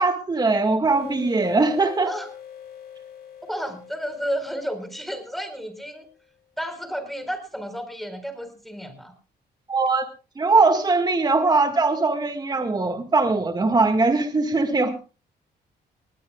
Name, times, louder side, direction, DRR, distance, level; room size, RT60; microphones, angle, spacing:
voice 1, 0.0-2.1 9.7-10.1 10.4-14.9, right 3 dB, 25° right, 7 dB, 1.8 m, -21 dB
sound 1, 0.9-6.2, left 9 dB, 60° left, 4.6 m, -44 dB
voice 2, 3.5-6.0 6.6-9.1, equal, ahead, 7 dB, 4.4 m, -32 dB
19.5 x 19.5 x 2.4 m, 0.34 s
cardioid pair, 100°, 18 cm